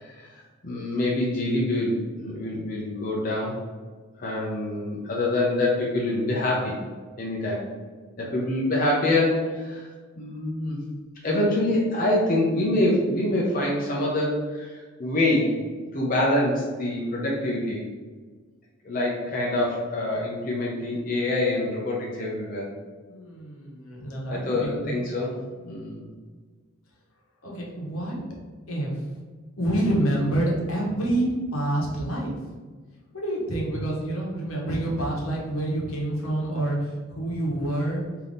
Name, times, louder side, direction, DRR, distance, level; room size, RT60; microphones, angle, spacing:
voice 1, 0.0-3.6 4.2-6.8 7.2-7.6 8.2-9.9 10.2-10.8 11.2-15.6 15.9-17.9 18.8-22.7 24.3-25.3 25.6-26.1, left 1 dB, 40° left, -3 dB, 0.7 m, -25 dB
voice 2, 23.1-25.0 27.4-28.2 28.7-29.2 29.6-32.4 33.1-38.1, right 1 dB, 80° left, -3 dB, 1.1 m, -27 dB
3.5 x 2.9 x 3.8 m, 1.4 s
head